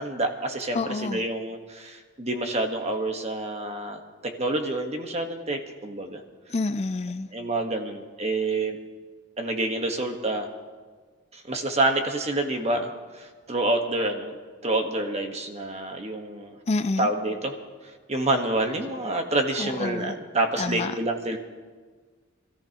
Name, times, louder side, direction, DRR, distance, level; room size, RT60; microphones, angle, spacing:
voice 1, 0.0-4.0 4.4-6.2 7.3-8.8 9.4-10.5 11.3-14.4 14.6-16.6 17.0-17.6 18.1-21.4, right 2 dB, 30° right, 1.3 m, -27 dB
voice 2, 0.7-1.2 6.5-7.3 16.7-17.1 19.6-20.1 20.6-20.9, left 3 dB, 30° left, 0.4 m, -28 dB
26.5 x 14.0 x 3.0 m
head